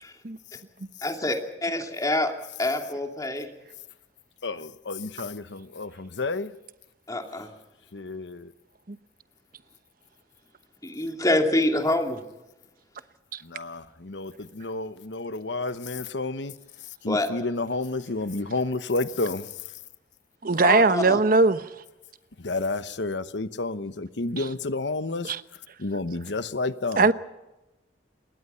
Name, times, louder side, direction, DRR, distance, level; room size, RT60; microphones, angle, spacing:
voice 1, 1.0-1.4 1.6-2.3 2.6-3.5 7.1-7.5 10.8-12.2 17.1-17.3 20.6-21.2, left 1 dB, 20° left, 2.8 m, -26 dB
voice 2, 4.4-6.5 7.9-8.5 13.4-16.5 17.0-19.5 22.4-25.3 25.8-27.1, left 3 dB, 70° left, 1.0 m, -30 dB
voice 3, 20.4-21.6 25.2-25.4 27.0-27.1, right 3 dB, 50° right, 1.0 m, -19 dB
27.5 x 21.5 x 5.7 m
head